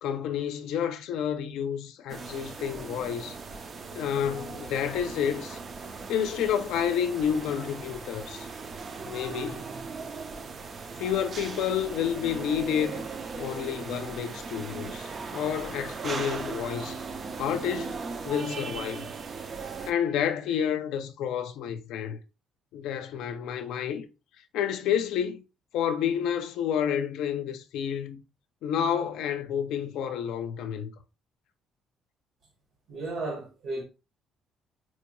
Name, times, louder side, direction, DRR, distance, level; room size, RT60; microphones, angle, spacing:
voice 1, 0.0-3.4 3.9-5.6 6.1-8.5 9.1-9.7 11.0-13.1 13.4-17.0 17.4-18.0 18.2-19.1 19.9-22.2 22.7-24.1 24.5-25.4 25.7-28.2 28.6-30.9, left 8 dB, 85° left, 0.4 m, -30 dB
sound 1, 2.1-19.9, right 4 dB, 30° right, 0.4 m, -38 dB
voice 2, 32.9-33.8, right 2 dB, 60° right, 1.1 m, -34 dB
4.3 x 2.2 x 3.0 m
cardioid pair, 150°, 0 cm